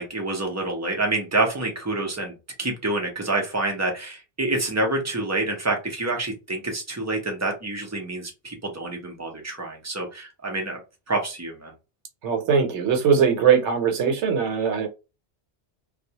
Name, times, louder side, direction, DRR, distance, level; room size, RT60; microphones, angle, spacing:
voice 1, 0.0-2.3 2.6-10.8 11.1-11.7, right 2 dB, 25° right, 1 dB, 0.4 m, -27 dB
voice 2, 12.2-14.9, right 7 dB, 80° right, 5 dB, 0.9 m, -21 dB
2.2 x 2.0 x 2.7 m, 0.28 s
omnidirectional pair, 1.2 m